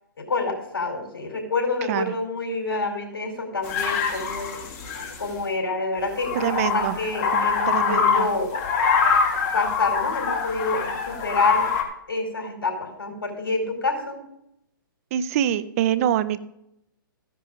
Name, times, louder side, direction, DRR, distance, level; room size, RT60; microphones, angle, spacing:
voice 1, 0.2-4.6 5.2-8.5 9.5-11.7 12.1-14.2, left 3 dB, 75° left, 2 dB, 4.8 m, -27 dB
sound 1, 3.6-5.3 6.0-11.8, left 5 dB, 35° left, 2.3 m, -24 dB
voice 2, 6.3-7.0 7.3-8.3 15.1-16.4, right 11 dB, 40° right, 15 dB, 0.7 m, -25 dB
15.0 x 10.0 x 3.9 m, 0.80 s
hypercardioid pair, 130°, 12 cm